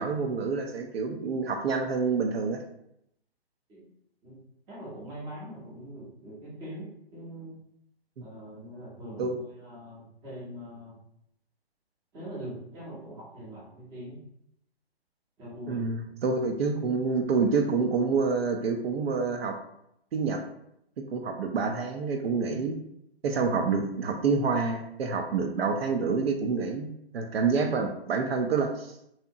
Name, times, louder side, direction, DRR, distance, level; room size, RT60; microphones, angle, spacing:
voice 1, 0.0-2.6 9.2-9.4 15.7-19.6 20.1-20.4 21.0-22.8 23.2-28.9, right 4 dB, 65° right, 4 dB, 0.5 m, -27 dB
voice 2, 4.7-7.6 8.2-10.9 12.1-14.2 15.4-15.9, right 1 dB, 10° right, -7 dB, 0.6 m, -42 dB
2.7 x 2.0 x 2.6 m, 0.76 s
hypercardioid pair, 140°, 32 cm